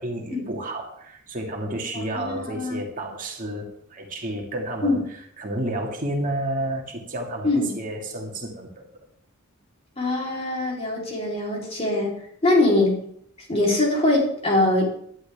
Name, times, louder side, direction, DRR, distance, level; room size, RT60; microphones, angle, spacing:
voice 1, 0.0-5.0 5.4-8.8, right 1 dB, 40° right, 1 dB, 2.0 m, -31 dB
voice 2, 1.9-2.8 4.8-5.0 7.4-7.7 10.0-12.1 12.4-13.0 13.5-14.9, left 2 dB, 30° left, -2 dB, 3.6 m, -22 dB
17.5 x 11.5 x 3.5 m, 0.67 s
head